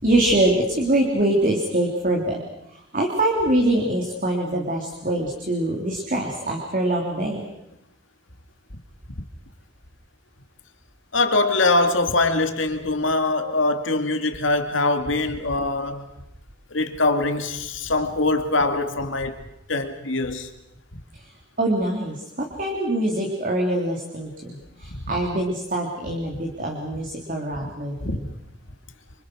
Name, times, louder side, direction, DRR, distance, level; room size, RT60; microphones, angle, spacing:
voice 1, 0.0-2.4 2.7-7.5 21.1-21.2 21.6-28.3, right 1 dB, 45° right, 3.6 m, -24 dB
voice 2, 11.1-16.1 16.7-19.4 19.7-20.5 27.6-27.7 28.0-28.2, left 2 dB, 75° left, 2.6 m, -23 dB
28.5 x 26.5 x 6.4 m
head